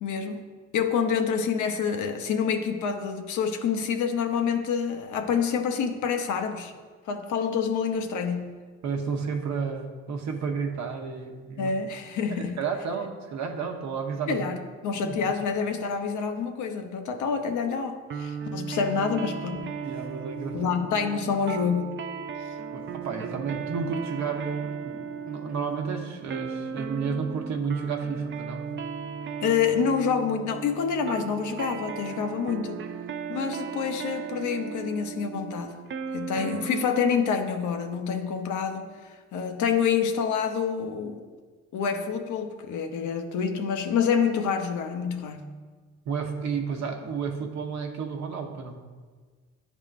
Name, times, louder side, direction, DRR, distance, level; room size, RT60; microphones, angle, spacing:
voice 1, 0.0-0.4 0.7-6.7 7.1-8.5 11.6-12.6 14.3-19.7 20.5-22.0 29.4-32.8 33.3-35.8 36.1-38.9 39.3-41.2 41.7-45.5, left 6 dB, 75° left, 5 dB, 0.7 m, -27 dB
voice 2, 8.8-11.7 12.3-14.5 15.0-15.1 19.8-20.6 22.7-28.7 46.1-48.8, right 5 dB, 65° right, 3 dB, 0.9 m, -32 dB
sound 1, 18.1-37.2, right 6 dB, 40° right, 0.4 m, -36 dB
10.5 x 3.6 x 2.5 m, 1.5 s
cardioid pair, 90°, 30 cm